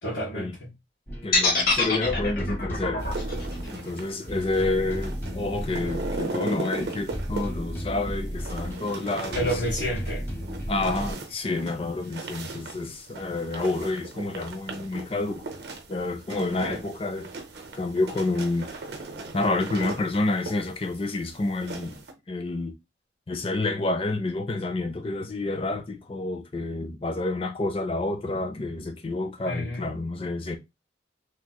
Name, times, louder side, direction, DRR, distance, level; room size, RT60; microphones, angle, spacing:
voice 1, 0.0-0.7 7.7-7.9 9.3-10.3 29.4-29.9, equal, 85° left, 1.7 m, -30 dB
sound 1, 1.1-11.1, equal, 10° left, 0.9 m, -35 dB
voice 2, 1.2-3.1 3.7-9.5 10.7-15.4 15.9-17.3 17.7-18.8 19.3-22.8 23.3-30.6, left 2 dB, 30° left, 0.4 m, -29 dB
sound 2, 1.3-5.4, left 3 dB, 50° left, 0.8 m, -26 dB
sound 3, 3.0-22.1, right 3 dB, 60° right, 0.7 m, -38 dB
3.4 x 2.9 x 2.2 m
head